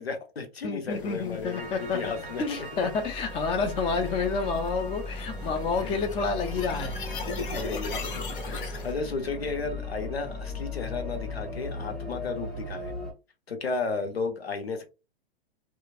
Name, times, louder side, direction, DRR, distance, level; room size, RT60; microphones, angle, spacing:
voice 1, 0.0-2.9 5.8-5.9 7.3-12.9 13.5-14.8, left 4 dB, 85° left, 0.8 m, -34 dB
voice 2, 0.6-2.1 2.4-7.0, left 4 dB, 20° left, 0.5 m, -29 dB
sound 1, 0.9-8.9, left 4 dB, 60° left, 1.0 m, -39 dB
Piano, 1.5-12.7, right 4 dB, 30° right, 0.6 m, -48 dB
sound 2, 2.9-13.1, left 2 dB, ahead, 1.0 m, -37 dB
2.9 x 2.2 x 2.4 m
figure-of-eight pair, 110°, 30 cm